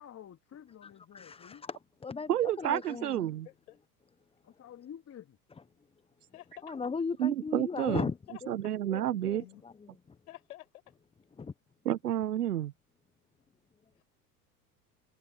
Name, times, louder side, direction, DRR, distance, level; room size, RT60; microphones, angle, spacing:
voice 1, 0.0-1.6 4.4-5.4, left 9 dB, 30° left, 3.2 m, -50 dB
voice 2, 0.8-3.3 6.6-8.5 8.9-9.7 11.4-11.5, left 5 dB, 10° left, 0.9 m, -37 dB
voice 3, 2.3-3.5 7.2-8.0 8.5-9.4 11.8-12.7, right 12 dB, 75° right, 1.3 m, -30 dB
voice 4, 3.4-3.8 6.3-6.7 8.3-8.4 9.4-9.7 10.3-11.0, left 15 dB, 70° left, 6.5 m, -50 dB
figure-of-eight pair, 80°, 46 cm